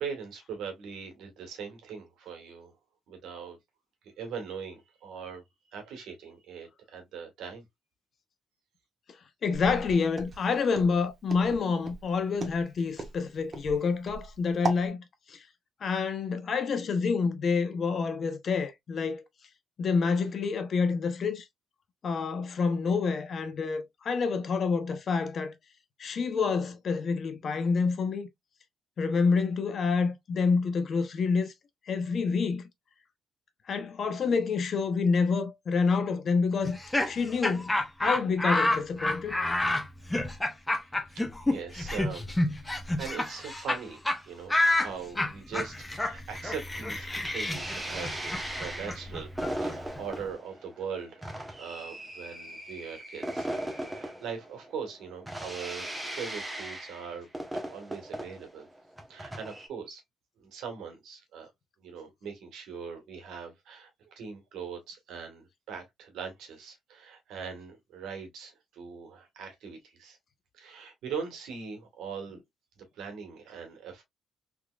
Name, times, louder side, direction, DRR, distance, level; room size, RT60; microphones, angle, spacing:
voice 1, 0.0-2.7 3.1-3.6 4.2-5.4 5.7-7.6 41.4-42.3 43.0-51.2 51.6-57.3 57.7-58.7 59.1-60.0 60.4-61.5 61.8-70.2 70.5-72.4 72.8-74.0, right 6 dB, 80° right, 1.6 m, -41 dB
voice 2, 9.4-15.4 15.8-19.2 19.8-21.5 22.0-25.5 26.0-28.3 29.0-31.5 31.9-32.6 33.7-36.8 37.0-37.7 38.0-39.4, left 5 dB, 55° left, 0.9 m, -28 dB
Walk footsteps, 9.5-14.9, right 4 dB, 40° right, 1.3 m, -38 dB
Laughter, 36.6-43.8 44.1-44.2 44.5-50.2, left 2 dB, 15° left, 0.9 m, -29 dB
sound 1, 47.5-59.7, right 1 dB, 10° right, 1.1 m, -38 dB
3.6 x 3.0 x 2.4 m
cardioid pair, 90°, 0 cm